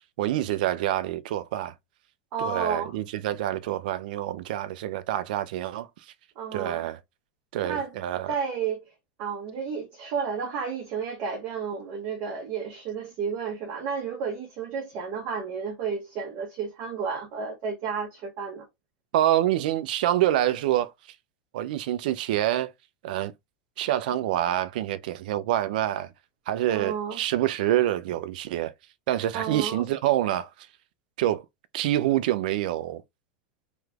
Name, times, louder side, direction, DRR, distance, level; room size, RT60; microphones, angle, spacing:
voice 1, 0.2-1.7 2.4-5.9 6.5-7.0 7.5-8.3 19.1-20.9 21.5-22.7 23.0-23.3 23.8-26.1 26.5-28.7 29.1-30.5 31.2-31.4 31.7-33.0, right 13 dB, 75° right, 0.4 m, -26 dB
voice 2, 2.3-3.0 6.4-6.9 7.6-7.9 8.3-8.8 9.2-18.7 26.7-27.2 29.3-29.8, right 6 dB, 55° right, 1.0 m, -32 dB
3.1 x 3.0 x 2.3 m
hypercardioid pair, 110°, 5 cm